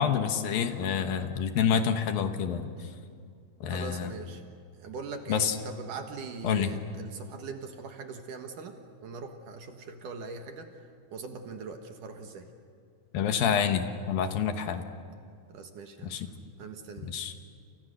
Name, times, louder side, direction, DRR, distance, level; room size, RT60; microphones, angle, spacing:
voice 1, 0.0-2.7 3.6-4.1 5.3-5.6 6.4-6.7 13.1-14.9 16.0-16.3 17.0-17.3, left 7 dB, 70° left, 7 dB, 2.8 m, -28 dB
voice 2, 3.7-4.4 4.8-10.7 11.1-12.5 15.5-16.2 16.6-17.1, right 4 dB, 60° right, 5 dB, 2.8 m, -41 dB
29.5 x 28.5 x 6.6 m, 2.3 s
omnidirectional pair, 4.5 m